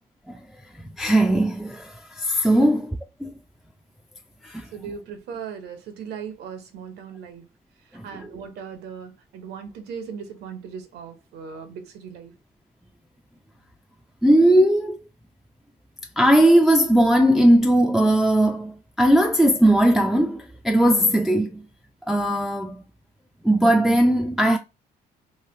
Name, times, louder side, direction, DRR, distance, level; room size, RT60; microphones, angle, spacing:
voice 1, 0.7-3.4 4.4-4.7 7.9-8.1 14.2-15.0 16.2-21.6 22.1-22.8 23.4-24.6, right 1 dB, ahead, 0.3 m, -19 dB
voice 2, 4.7-7.5 7.8-12.3, right 6 dB, 75° right, 0.9 m, -38 dB
3.2 x 2.6 x 2.5 m
cardioid pair, 110°, 17 cm